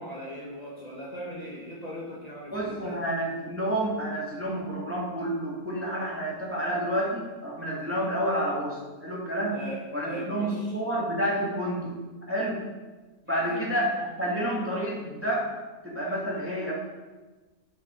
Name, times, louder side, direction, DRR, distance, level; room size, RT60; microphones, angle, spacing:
voice 1, 0.0-3.0 9.5-10.8 13.3-13.7, equal, 25° left, -6 dB, 1.7 m, -39 dB
voice 2, 2.5-9.6 9.9-11.9 12.3-12.6 13.3-15.6 15.8-16.7, right 1 dB, 10° right, -5 dB, 2.2 m, -29 dB
12.0 x 5.7 x 4.5 m, 1.3 s
omnidirectional pair, 1.6 m